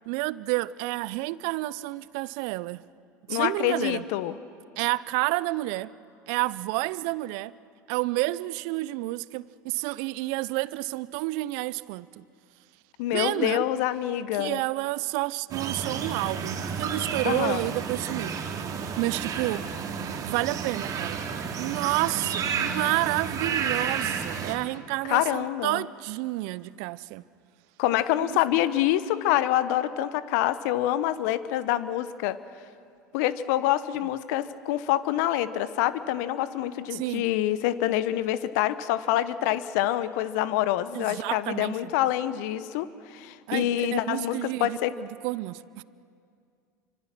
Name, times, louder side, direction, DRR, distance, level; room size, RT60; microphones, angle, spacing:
voice 1, 0.1-2.8 3.3-4.0 4.8-5.9 6.3-7.5 7.9-12.2 13.1-13.7 14.3-18.3 18.9-19.7 20.2-21.2 21.5-27.2 28.2-28.4 36.9-37.3 40.9-41.9 43.5-45.8, right 20 dB, 60° right, 0.6 m, -30 dB
voice 2, 3.3-4.4 13.0-14.6 17.2-17.7 25.0-25.8 27.8-32.4 33.1-44.9, left 13 dB, 65° left, 1.1 m, -26 dB
sound 1, 15.5-24.5, right 6 dB, 35° right, 2.8 m, -31 dB
29.5 x 25.0 x 6.1 m
hypercardioid pair, 80°, 10 cm